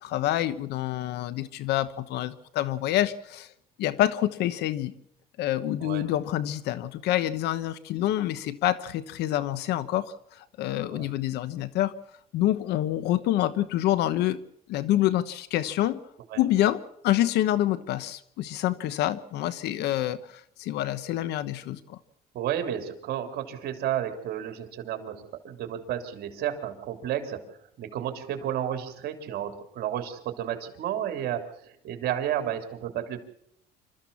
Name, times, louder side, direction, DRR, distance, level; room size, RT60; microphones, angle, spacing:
voice 1, 0.0-3.5 3.8-4.9 5.4-11.9 12.3-14.4 14.7-16.0 16.4-22.0, left 13 dB, 85° left, 14 dB, 1.0 m, -27 dB
voice 2, 22.3-27.4 27.8-33.2, right 10 dB, 70° right, 6 dB, 3.3 m, -32 dB
26.5 x 14.0 x 7.1 m, 0.72 s
cardioid pair, 110°, 17 cm